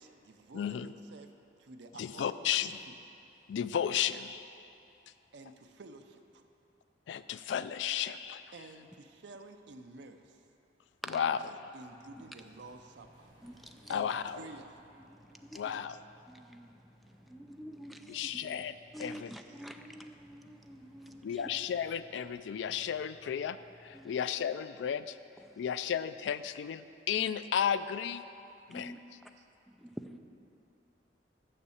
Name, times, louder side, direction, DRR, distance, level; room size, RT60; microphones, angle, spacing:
voice 1, 0.0-1.3 1.6-3.0 5.3-6.5 8.5-10.4 11.7-13.3 13.9-14.8 29.4-29.5, right 3 dB, 75° right, 6 dB, 0.6 m, -51 dB
voice 2, 0.5-0.9 2.0-2.7 3.5-4.4 7.1-8.4 11.1-11.4 13.9-14.4 15.6-16.0 18.1-18.7 19.0-19.3 21.2-25.2 25.6-28.2 28.7-28.9, left 8 dB, 80° left, 13 dB, 0.3 m, -33 dB
voice 3, 11.0-11.4 12.2-12.3 13.4-14.1 15.0-15.8 16.3-18.6 18.9-21.5 23.9-24.3 25.4-25.7 28.7-29.0 29.7-30.2, equal, ahead, 5 dB, 0.3 m, -48 dB
sound 1, 11.9-24.0, equal, 30° right, 1.8 m, -62 dB
6.7 x 6.3 x 7.1 m, 2.8 s
head